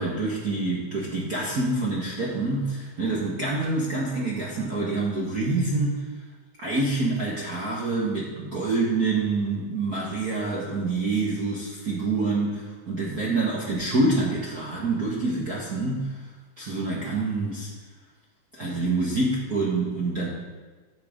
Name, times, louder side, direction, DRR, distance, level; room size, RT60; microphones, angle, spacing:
voice 1, 0.0-6.0 6.6-16.2 16.6-17.7 18.6-20.3, right 3 dB, 50° right, -5 dB, 1.2 m, -26 dB
15.5 x 6.6 x 3.6 m, 1.4 s
omnidirectional pair, 3.5 m